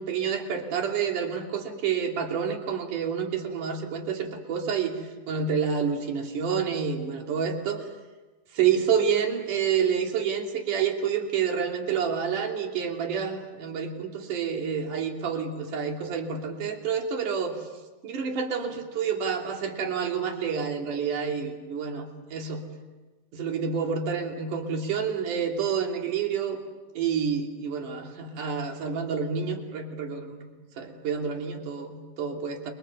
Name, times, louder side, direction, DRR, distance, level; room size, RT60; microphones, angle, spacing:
voice 1, 0.0-7.8 8.5-17.6 18.0-22.6 23.3-26.6 27.0-32.7, right 7 dB, 60° right, 2 dB, 4.2 m, -28 dB
30.0 x 25.0 x 7.1 m, 1.2 s
omnidirectional pair, 4.2 m